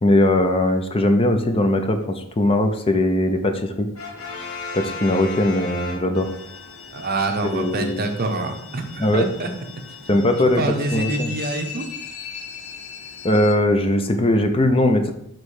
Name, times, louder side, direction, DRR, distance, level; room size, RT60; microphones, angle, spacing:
voice 1, 0.0-3.9 4.7-6.3 7.4-8.0 9.0-9.3 10.1-10.6 10.9-11.3 13.2-15.1, left 1 dB, 25° left, 6 dB, 0.5 m, -20 dB
Brass instrument, 3.9-6.6, left 3 dB, 90° left, 1.4 m, -33 dB
sound 1, 6.1-13.5, left 6 dB, 70° left, 0.6 m, -38 dB
voice 2, 6.9-9.5 10.1-10.2 10.6-11.9, right 2 dB, 45° right, 5 dB, 0.7 m, -26 dB
6.3 x 3.1 x 4.7 m, 0.75 s
head